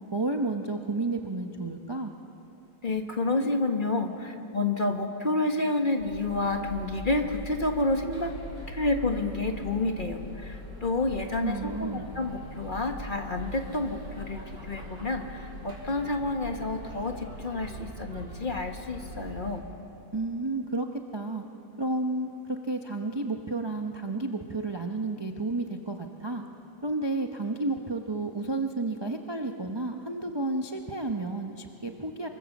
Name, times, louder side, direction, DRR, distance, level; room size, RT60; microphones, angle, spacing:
voice 1, 0.1-2.1 11.4-12.1 20.1-20.9 21.1-21.4 21.8-26.4 26.8-32.3, right 2 dB, 30° right, 4 dB, 0.5 m, -31 dB
voice 2, 2.8-8.3 8.7-19.6, left 2 dB, 30° left, 4 dB, 1.2 m, -29 dB
sound 1, 6.0-19.6, equal, 60° right, 4.7 m, -42 dB
24.5 x 23.5 x 7.2 m, 2.9 s
omnidirectional pair, 2.1 m